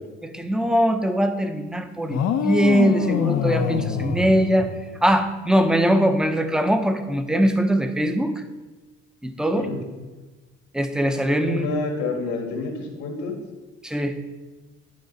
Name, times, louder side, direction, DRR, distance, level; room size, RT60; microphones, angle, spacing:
voice 1, 0.2-4.7 5.0-8.4 9.2-9.7 10.7-11.7 13.8-14.1, equal, ahead, 7 dB, 0.7 m, -21 dB
sound 1, 2.1-5.2, left 8 dB, 60° left, 0.7 m, -25 dB
voice 2, 11.4-13.4, left 3 dB, 85° left, 2 dB, 1.7 m, -28 dB
10.5 x 3.8 x 5.2 m, 1.2 s
cardioid pair, 110°, 29 cm